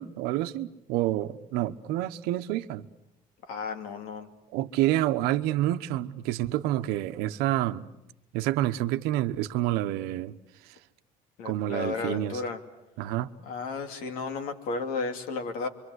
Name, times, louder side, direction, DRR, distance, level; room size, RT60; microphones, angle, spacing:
voice 1, 0.0-2.9 4.5-7.9 8.3-10.4 11.4-12.4 13.0-13.3, right 14 dB, 80° right, 1.1 m, -28 dB
voice 2, 3.5-4.3 11.4-12.6 13.4-15.7, left 4 dB, 65° left, 2.8 m, -33 dB
27.0 x 24.5 x 8.1 m
cardioid pair, 170°, 16 cm